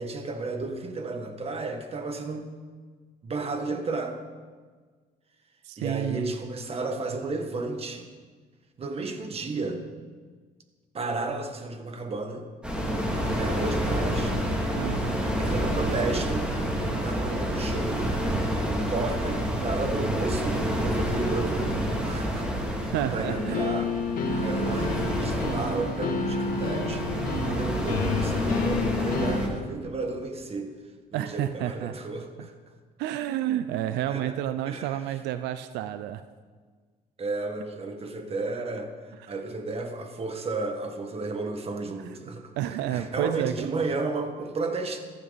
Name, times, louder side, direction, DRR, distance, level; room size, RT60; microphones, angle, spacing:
voice 1, 0.0-2.5 3.2-4.2 5.8-8.1 8.8-9.9 10.9-12.5 13.3-14.4 15.0-16.5 17.0-18.1 18.9-22.5 23.1-23.9 24.4-27.1 27.3-30.7 31.1-32.5 34.1-34.4 34.7-35.0 37.2-42.5 42.9-45.0, right 3 dB, 35° right, 5 dB, 1.8 m, -32 dB
voice 2, 5.6-6.3 14.8-15.2 22.9-23.8 24.3-24.5 31.1-32.0 32.4-32.5 33.0-36.2 42.0-42.1 42.6-43.7, right 12 dB, 90° right, 11 dB, 0.6 m, -30 dB
sound 1, 12.6-29.5, equal, 5° right, 2.7 m, -29 dB
sound 2, 23.2-29.4, left 4 dB, 55° left, 2.6 m, -29 dB
14.5 x 14.0 x 4.2 m, 1.5 s
cardioid pair, 110°, 17 cm